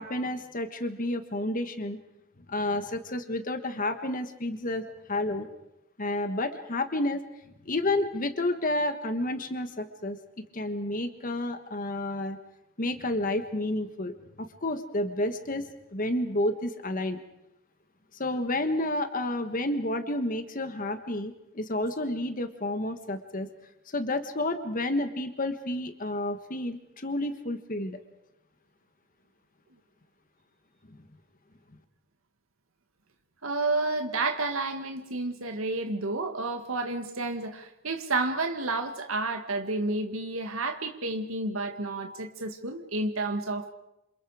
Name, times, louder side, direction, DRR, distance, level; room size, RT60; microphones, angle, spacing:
voice 1, 0.0-2.0 2.5-5.5 6.0-7.2 7.6-10.2 10.5-12.4 12.8-15.6 15.9-17.2 18.2-23.5 23.9-28.0, left 1 dB, 40° left, 8 dB, 1.5 m, -30 dB
voice 2, 33.4-43.7, right 2 dB, 80° right, 5 dB, 1.9 m, -30 dB
28.0 x 27.5 x 5.0 m, 0.87 s
head